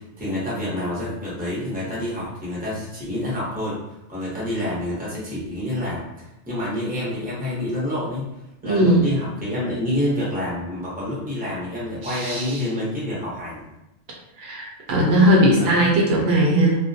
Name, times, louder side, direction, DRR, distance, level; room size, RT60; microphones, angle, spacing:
voice 1, 0.0-3.8 4.1-8.3 8.6-13.6 15.5-15.9, left 1 dB, 10° right, -7 dB, 0.7 m, -28 dB
voice 2, 8.6-9.1 12.0-12.6 14.4-16.8, right 1 dB, 70° right, -2 dB, 0.8 m, -18 dB
2.2 x 2.2 x 2.6 m, 0.92 s
omnidirectional pair, 1.1 m